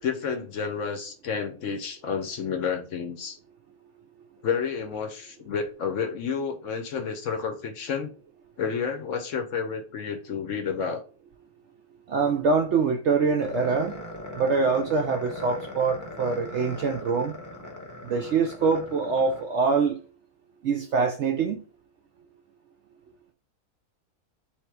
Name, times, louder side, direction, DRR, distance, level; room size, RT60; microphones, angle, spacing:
voice 1, 0.0-3.4 4.4-8.1 8.6-11.0, left 6 dB, 65° left, 0.9 m, -30 dB
voice 2, 12.1-13.9 14.3-17.4 18.0-20.0 20.6-21.6, right 4 dB, 70° right, 0.7 m, -24 dB
sound 1, 13.4-19.8, left 1 dB, 15° left, 0.6 m, -40 dB
3.5 x 2.9 x 4.6 m
omnidirectional pair, 1.6 m